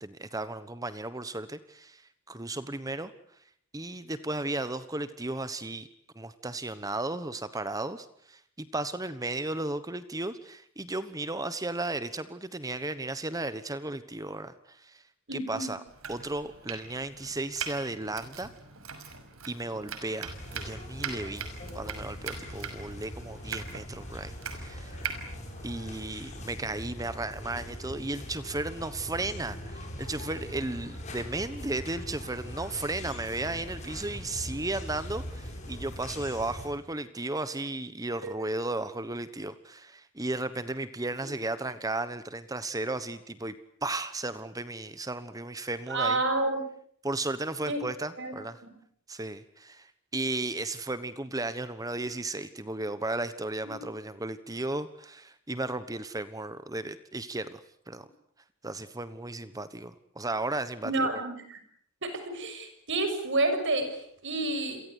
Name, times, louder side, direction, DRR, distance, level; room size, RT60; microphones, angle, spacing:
voice 1, 0.0-3.1 3.7-5.9 6.1-15.0 15.3-15.8 16.1-18.5 19.5-21.5 21.7-25.1 25.6-43.5 43.8-46.2 47.0-48.6 49.1-58.1 58.6-61.2, right 2 dB, 15° right, 13 dB, 1.2 m, -35 dB
voice 2, 15.3-15.7 19.7-19.9 38.2-38.3 45.9-46.6 47.7-47.8 48.2-48.4 53.6-53.8 60.8-61.6 62.0-64.8, right 2 dB, 60° right, 8 dB, 6.7 m, -29 dB
Domestic sounds home sounds, 15.9-26.5, right 6 dB, 75° right, 5.8 m, -42 dB
sound 1, 20.2-36.7, equal, 35° left, 7.6 m, -41 dB
29.5 x 23.0 x 8.3 m, 0.66 s
head